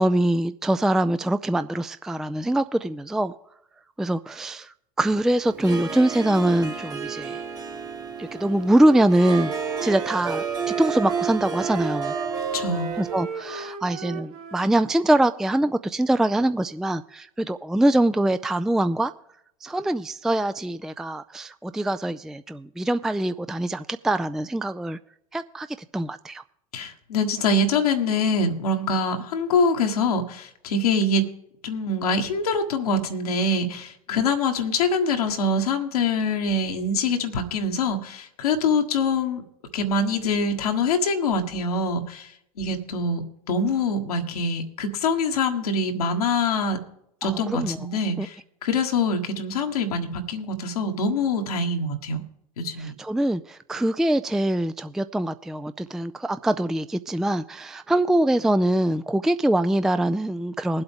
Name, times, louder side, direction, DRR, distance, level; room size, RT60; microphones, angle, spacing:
voice 1, 0.0-3.3 4.0-7.4 8.2-9.5 9.8-10.4 10.8-12.1 13.0-19.1 19.6-25.0 25.3-25.7 25.9-26.4 47.2-47.8 48.2-48.3 52.8-60.8, right 1 dB, ahead, 12 dB, 0.4 m, -23 dB
Harp, 5.4-13.3, right 6 dB, 20° right, 1.6 m, -31 dB
Wind instrument woodwind instrument, 8.3-14.7, right 6 dB, 80° right, 1.5 m, -35 dB
voice 2, 12.5-12.9 26.7-31.3 31.6-39.4 39.7-42.3 42.6-46.8 47.2-52.2 52.6-52.9, left 3 dB, 85° left, 4 dB, 1.5 m, -24 dB
20.5 x 8.0 x 3.6 m, 0.77 s
hypercardioid pair, 80°, 19 cm